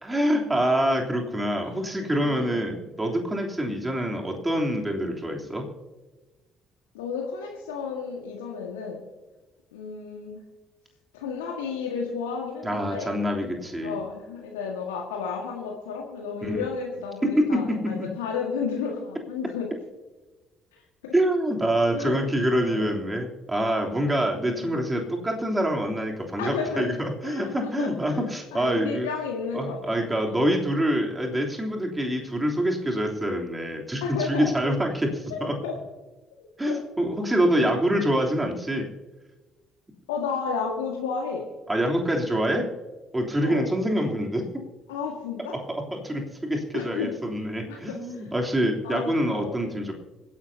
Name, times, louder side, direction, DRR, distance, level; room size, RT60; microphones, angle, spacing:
voice 1, 0.0-5.7 12.6-14.0 16.4-16.6 17.2-18.1 21.1-29.1 29.5-35.6 36.6-38.9 41.7-42.6 43.1-44.4 45.7-49.9, equal, 15° right, 1 dB, 3.2 m, -26 dB
voice 2, 2.2-2.7 6.9-9.0 9.7-10.4 11.1-13.1 13.8-19.7 21.0-21.1 21.9-23.0 23.8-24.3 24.5-24.7 26.4-26.9 27.2-30.5 34.0-34.5 35.3-35.7 36.4-36.8 37.4-37.5 40.1-41.4 43.4-43.7 44.9-45.6 46.7-47.1 47.7-48.3 48.8-49.6, left 5 dB, 75° left, 1 dB, 1.8 m, -33 dB
26.0 x 11.0 x 2.8 m, 1.2 s
figure-of-eight pair, 50°, 0 cm